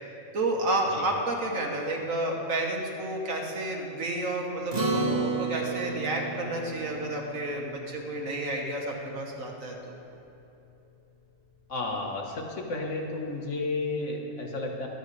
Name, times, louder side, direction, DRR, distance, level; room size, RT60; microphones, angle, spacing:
voice 1, 0.3-9.9, right 2 dB, 80° right, 0 dB, 1.8 m, -31 dB
Acoustic guitar, 4.7-9.4, right 3 dB, 30° right, 1.4 m, -33 dB
voice 2, 11.7-14.9, left 2 dB, 65° left, 1 dB, 1.6 m, -32 dB
23.5 x 8.1 x 3.3 m, 2.9 s
omnidirectional pair, 1.4 m